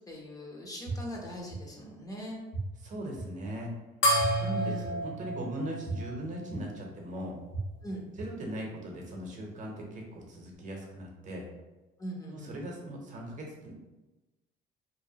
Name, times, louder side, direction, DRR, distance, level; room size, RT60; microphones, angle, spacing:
voice 1, 0.1-2.4 4.5-5.5 7.8-8.1 12.0-12.6, equal, 20° left, -1 dB, 0.5 m, -41 dB
sound 1, 0.9-1.0 1.5-1.6 2.5-2.6 3.2-3.3 4.2-4.3 4.8-4.9 5.9-6.0 6.5-6.6 7.5-7.6 8.2-8.3, right 4 dB, 60° left, 1.1 m, -36 dB
voice 2, 2.8-3.7 4.4-4.7 5.0-7.4 8.2-11.5 12.3-13.8, right 1 dB, 45° right, 0 dB, 0.7 m, -39 dB
sound 2, 4.0-6.8, right 1 dB, 85° left, 0.7 m, -30 dB
2.8 x 2.1 x 2.7 m, 1.1 s
cardioid pair, 110°, 17 cm